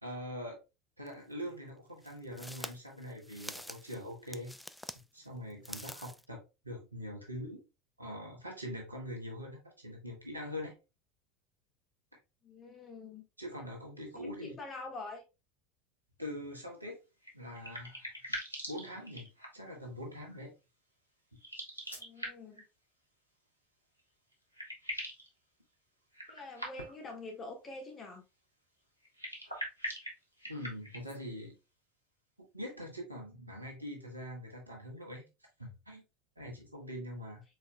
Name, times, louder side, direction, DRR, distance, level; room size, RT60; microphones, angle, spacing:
voice 1, 0.0-0.6 1.0-4.6 5.1-7.6 8.0-10.7 13.4-14.5 16.2-17.0 17.3-18.0 18.7-19.3 19.5-20.5 30.4-31.5 32.5-35.3 35.6-36.0 36.4-37.4, equal, 85° right, 1.3 m, -43 dB
sound 1, 1.1-1.2 2.0-5.0 5.5-6.3, equal, ahead, 0.3 m, -46 dB
voice 2, 12.4-13.2 14.1-15.2 22.0-22.6 26.3-28.2, left 3 dB, 25° left, 1.6 m, -45 dB
sound 2, 17.2-19.7 21.3-22.6 24.0-24.1 24.3-25.3 26.1-27.1 29.0-31.2, equal, 90° left, 1.0 m, -42 dB
4.8 x 4.2 x 2.2 m
figure-of-eight pair, 75°, 0 cm